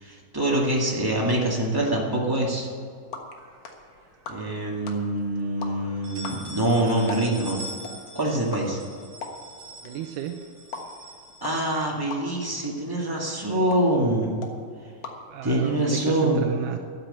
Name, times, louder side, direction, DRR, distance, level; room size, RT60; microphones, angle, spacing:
voice 1, 0.0-2.7 4.3-7.6 8.1-8.8 11.4-14.3 15.4-16.5, right 1 dB, 20° right, -3 dB, 0.6 m, -25 dB
sound 1, 2.7-16.0, left 4 dB, 55° left, 1.9 m, -43 dB
sound 2, 3.4-4.3 4.7-4.8 5.2-5.3 5.8-12.1, right 1 dB, 45° right, 2.9 m, -43 dB
voice 2, 9.8-10.4 15.3-16.8, right 8 dB, 80° right, 5 dB, 1.9 m, -32 dB
13.0 x 9.1 x 7.9 m, 2.2 s
omnidirectional pair, 4.4 m